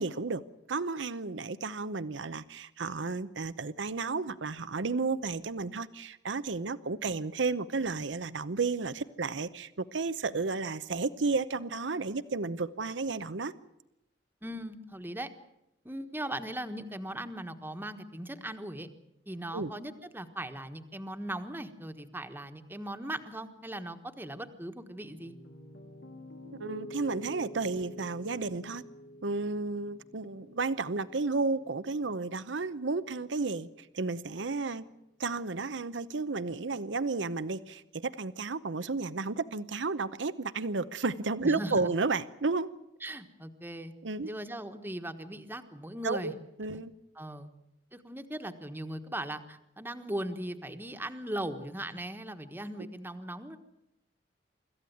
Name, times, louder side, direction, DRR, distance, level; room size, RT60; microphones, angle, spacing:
voice 1, 0.0-13.5 19.5-19.7 26.6-28.8 29.2-34.8 35.2-42.7 44.0-44.3 46.0-46.3 46.6-46.9 52.8-52.9, right 3 dB, 85° right, 14 dB, 0.8 m, -32 dB
voice 2, 14.4-15.3 15.8-18.9 19.3-25.3 41.4-41.9 43.0-43.9 44.2-46.3 46.7-46.8 47.1-47.5 47.9-53.6, right 1 dB, 10° right, 7 dB, 1.3 m, -39 dB
Piano, 25.2-33.3, equal, 70° left, 2.9 m, -49 dB
25.5 x 14.5 x 9.3 m, 0.84 s
head